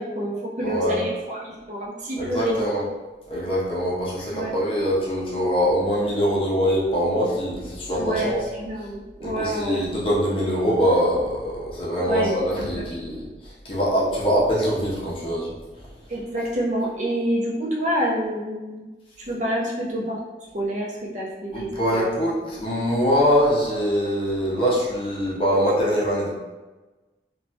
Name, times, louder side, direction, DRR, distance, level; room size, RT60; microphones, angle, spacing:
voice 1, 0.0-2.7 4.3-4.6 7.9-9.8 12.1-12.3 12.6-12.8 16.1-18.9 19.2-20.2 20.5-22.1, right 1 dB, 40° right, -4 dB, 0.6 m, -28 dB
voice 2, 0.6-1.0 2.2-2.8 3.3-8.4 9.2-13.2 13.6-15.5 21.5-26.3, equal, 30° left, -5 dB, 0.6 m, -23 dB
3.1 x 2.2 x 2.6 m, 1.2 s
head